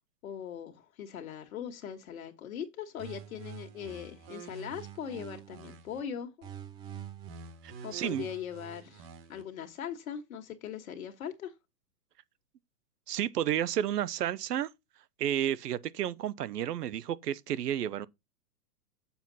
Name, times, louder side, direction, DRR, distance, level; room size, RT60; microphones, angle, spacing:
voice 1, 0.2-6.5 7.8-11.5, left 8 dB, 60° left, 1.8 m, -40 dB
sound 1, 3.0-6.0 6.4-9.4, right 7 dB, 40° right, 1.7 m, -46 dB
voice 2, 7.6-8.3 13.1-14.7 15.2-18.1, right 11 dB, 80° right, 0.9 m, -31 dB
7.5 x 7.1 x 4.1 m
hypercardioid pair, 155°, 47 cm